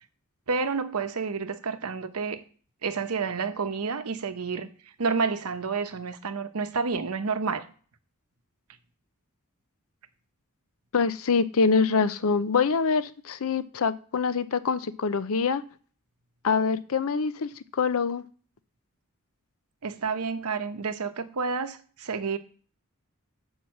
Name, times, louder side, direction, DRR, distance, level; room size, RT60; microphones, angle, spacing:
voice 1, 0.5-2.4 2.8-4.7 5.0-7.6 19.8-22.4, right 5 dB, 85° right, 0.8 m, -29 dB
voice 2, 10.9-15.6 16.4-18.2, left 5 dB, 70° left, 0.6 m, -25 dB
6.3 x 5.5 x 7.1 m
head